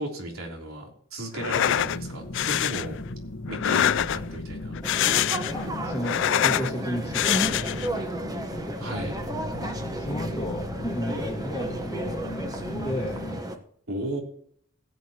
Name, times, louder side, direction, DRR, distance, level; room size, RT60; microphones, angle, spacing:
voice 1, 0.0-3.0 3.5-4.8 8.8-9.2 13.9-14.2, right 1 dB, 85° right, 1 dB, 3.3 m, -34 dB
sound 1, 1.3-2.0 2.3-2.9 3.5-4.4 4.7-5.6 5.9-6.7 7.1-7.9, left 11 dB, 60° left, 0.4 m, -25 dB
sound 2, 1.4-13.4, left 1 dB, 80° left, 1.3 m, -37 dB
sound 3, 4.8-13.6, right 1 dB, 20° right, 1.1 m, -33 dB
voice 2, 5.5-8.1 8.7-8.8 9.6-12.5 12.8-13.3, equal, 15° left, -5 dB, 1.5 m, -34 dB
17.0 x 8.4 x 2.9 m, 0.62 s
head